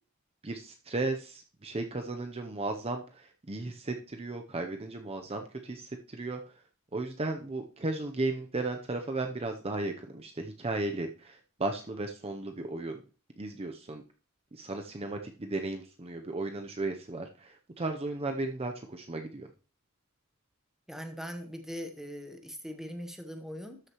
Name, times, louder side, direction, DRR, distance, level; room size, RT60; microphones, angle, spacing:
voice 1, 0.4-6.4 6.9-13.0 13.4-14.0 14.5-19.5, right 2 dB, 25° right, 5 dB, 0.7 m, -35 dB
voice 2, 20.9-23.8, equal, ahead, 6 dB, 1.0 m, -41 dB
13.0 x 6.5 x 3.0 m, 0.36 s
head